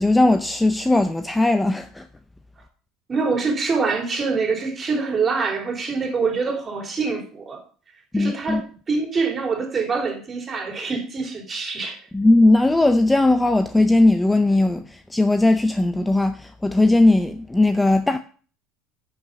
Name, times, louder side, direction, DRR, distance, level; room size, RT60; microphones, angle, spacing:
voice 1, 0.0-2.0 8.1-8.6 12.1-18.2, left 2 dB, 10° left, 0.5 m, -18 dB
voice 2, 3.1-7.6 8.1-12.0, right 4 dB, 30° right, 3.1 m, -25 dB
10.5 x 5.7 x 5.3 m
supercardioid pair, 115°, 0 cm